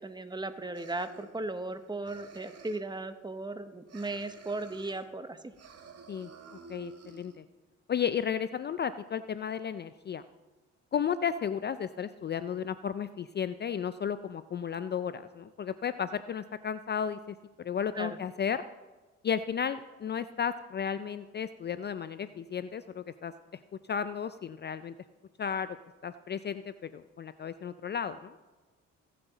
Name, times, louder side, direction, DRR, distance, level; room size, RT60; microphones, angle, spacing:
voice 1, 0.0-5.4 18.0-18.2, right 2 dB, 15° right, 10 dB, 0.8 m, -37 dB
sound 1, 0.7-1.8 2.0-3.0 3.9-5.1 5.5-7.4, right 5 dB, 55° right, 1.3 m, -50 dB
voice 2, 6.7-7.4 7.9-10.2 10.9-18.6 19.2-23.3 23.9-24.9 25.4-25.7 26.0-28.4, left 7 dB, 35° left, 13 dB, 0.4 m, -33 dB
16.5 x 7.6 x 4.0 m, 1.2 s
cardioid pair, 90°, 30 cm